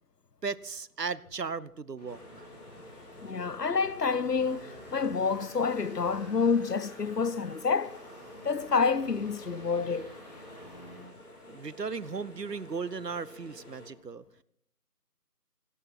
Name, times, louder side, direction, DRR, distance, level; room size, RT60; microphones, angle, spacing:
voice 1, 0.4-2.5 11.5-14.2, right 5 dB, 80° right, 1.1 m, -36 dB
sound 1, 2.0-11.0, left 1 dB, 25° left, 4.1 m, -50 dB
sound 2, 2.1-13.9, left 2 dB, 65° left, 5.2 m, -51 dB
voice 2, 3.2-8.0 8.4-10.1, left 5 dB, 80° left, 1.0 m, -28 dB
18.5 x 16.5 x 4.3 m
figure-of-eight pair, 170°, 48 cm